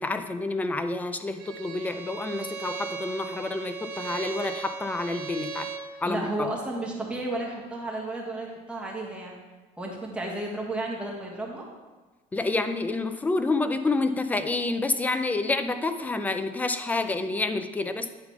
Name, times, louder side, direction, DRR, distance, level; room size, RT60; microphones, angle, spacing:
voice 1, 0.0-5.7 6.0-6.5 12.3-18.1, left 3 dB, 10° left, 9 dB, 0.4 m, -28 dB
Bowed string instrument, 1.4-5.9, right 5 dB, 60° right, 0.9 m, -37 dB
voice 2, 6.0-9.3 9.8-11.6, right 1 dB, 5° right, -2 dB, 1.3 m, -32 dB
9.6 x 3.9 x 5.8 m, 1.3 s
cardioid pair, 160°, 17 cm